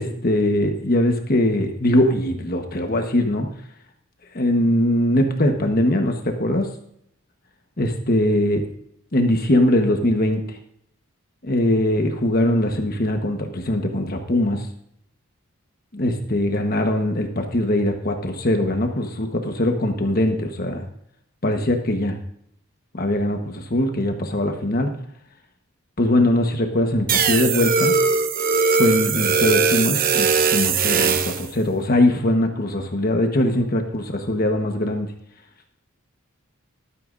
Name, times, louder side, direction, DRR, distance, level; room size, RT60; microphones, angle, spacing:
voice 1, 0.0-3.5 4.3-6.7 7.8-8.6 9.1-10.4 11.4-14.7 15.9-20.9 21.4-22.2 22.9-24.9 26.0-27.9 28.8-35.1, left 1 dB, 45° left, 4 dB, 1.2 m, -21 dB
sound 1, 27.1-31.5, right 5 dB, 45° right, 0.9 m, -20 dB
13.5 x 12.5 x 2.6 m, 0.70 s
head